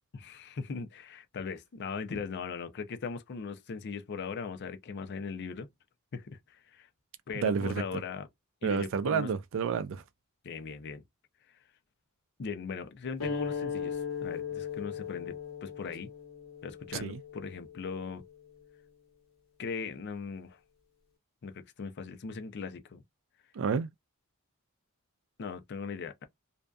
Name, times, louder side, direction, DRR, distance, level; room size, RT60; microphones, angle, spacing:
voice 1, 0.1-5.7 6.1-6.9 7.3-8.3 8.6-9.3 10.4-11.0 12.4-16.1 16.6-18.2 19.6-20.6 21.4-23.0 25.4-26.3, left 5 dB, 50° left, 0.5 m, -39 dB
voice 2, 7.4-7.8 8.6-10.0 16.9-17.2 23.6-23.9, right 6 dB, 60° right, 0.4 m, -30 dB
sound 1, 13.2-18.3, left 6 dB, 70° left, 1.2 m, -38 dB
2.6 x 2.3 x 2.3 m
head